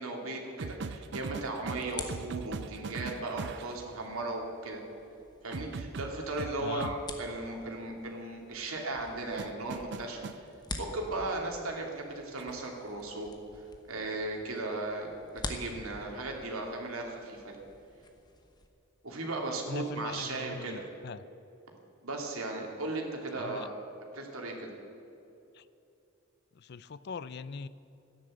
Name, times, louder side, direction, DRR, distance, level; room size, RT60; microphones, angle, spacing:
voice 1, 0.0-4.8 5.4-10.2 10.8-13.3 13.6-15.1 15.5-17.6 19.0-20.8 22.0-23.7 24.1-24.7, right 2 dB, 80° right, 0 dB, 2.7 m, -36 dB
sound 1, 0.6-3.8 5.5-7.0 9.4-10.4 12.4-12.6, right 4 dB, 55° right, 0.5 m, -39 dB
sound 2, 1.7-18.7, left 2 dB, 20° left, 1.0 m, -48 dB
voice 2, 6.6-6.9 19.7-21.2 23.3-23.7 25.5-25.7 26.5-27.7, left 5 dB, 50° left, 16 dB, 0.4 m, -41 dB
14.0 x 10.5 x 7.8 m, 2.7 s
head